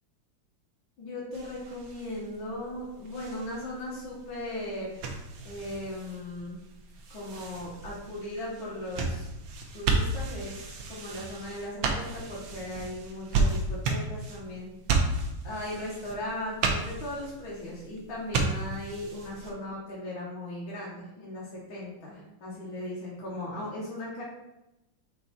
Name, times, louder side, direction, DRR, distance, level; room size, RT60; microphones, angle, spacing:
voice 1, 1.0-5.1 5.4-6.6 7.1-9.3 9.7-14.7 15.4-24.2, left 1 dB, 65° left, -6 dB, 2.0 m, -38 dB
sound 1, 1.3-19.5, right 3 dB, 70° right, 1.5 m, -33 dB
4.8 x 4.7 x 4.2 m, 0.94 s
omnidirectional pair, 2.4 m